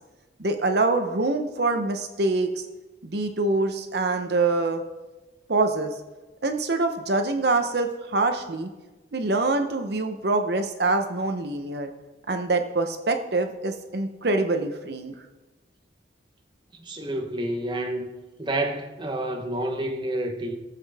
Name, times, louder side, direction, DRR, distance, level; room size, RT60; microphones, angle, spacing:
voice 1, 0.4-2.7 3.0-4.8 5.5-5.9 6.4-8.7 9.1-11.9 12.3-15.1, right 3 dB, 60° right, 0.8 m, -25 dB
voice 2, 16.7-18.1 18.4-20.6, right 1 dB, 25° right, 0.9 m, -29 dB
17.5 x 7.5 x 3.5 m
head